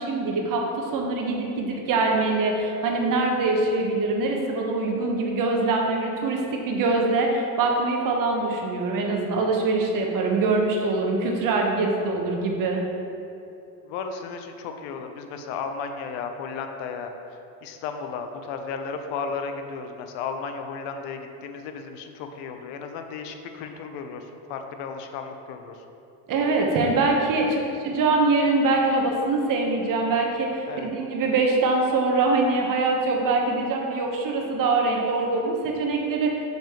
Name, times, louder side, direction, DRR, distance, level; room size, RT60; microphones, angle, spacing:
voice 1, 0.0-12.8 26.3-27.6 27.8-36.3, right 3 dB, 45° right, 1 dB, 1.0 m, -23 dB
voice 2, 13.8-17.1 17.6-25.8 27.4-27.5 30.7-30.9, left 5 dB, 65° left, 6 dB, 0.7 m, -34 dB
6.8 x 5.3 x 3.0 m, 2.7 s
supercardioid pair, 105°, 47 cm